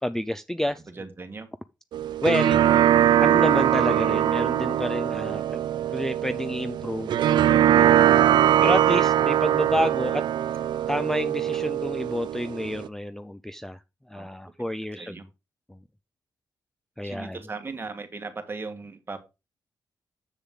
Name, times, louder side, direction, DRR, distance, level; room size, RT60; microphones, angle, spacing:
voice 1, 0.0-0.8 2.2-2.6 3.2-5.6 5.9-8.3 8.6-10.2 10.9-13.8 14.1-15.2 15.7-15.8 17.0-17.4, left 1 dB, 5° left, 0.4 m, -29 dB
voice 2, 0.9-1.5 8.1-8.8 14.1-14.4 14.9-15.3 17.0-19.2, right 4 dB, 30° right, 1.5 m, -38 dB
sound 1, 1.9-12.9, right 11 dB, 85° right, 0.4 m, -22 dB
7.3 x 6.8 x 3.7 m
cardioid pair, 95°, 8 cm